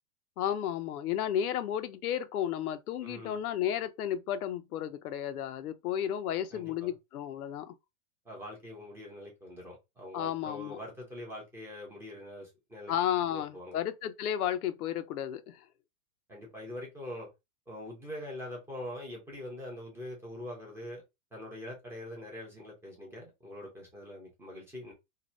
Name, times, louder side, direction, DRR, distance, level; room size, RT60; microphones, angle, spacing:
voice 1, 0.4-7.7 10.1-10.8 12.9-15.6, left 10 dB, 85° left, 0.6 m, -33 dB
voice 2, 3.0-3.4 6.5-6.9 8.3-12.9 13.2-13.8 16.3-17.3 17.7-21.0 21.3-24.9, left 1 dB, 5° right, 0.4 m, -43 dB
2.7 x 2.1 x 3.0 m
hypercardioid pair, 145°, 43 cm